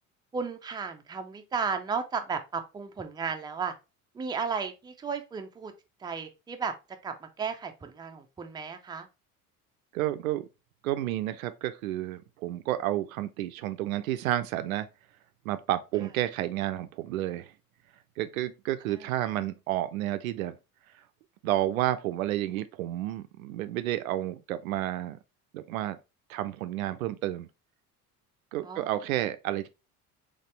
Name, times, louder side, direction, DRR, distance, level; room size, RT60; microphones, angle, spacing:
voice 1, 0.3-3.7 4.1-5.7 6.0-6.7 7.0-9.1 18.9-19.1 28.6-28.9, right 5 dB, 10° right, 0.5 m, -34 dB
voice 2, 9.9-10.5 10.8-14.9 15.5-17.5 18.2-20.6 21.4-25.2 25.5-26.0 26.3-27.5 28.5-29.7, right 14 dB, 70° right, 0.5 m, -31 dB
4.1 x 3.3 x 3.2 m
figure-of-eight pair, 60°, 44 cm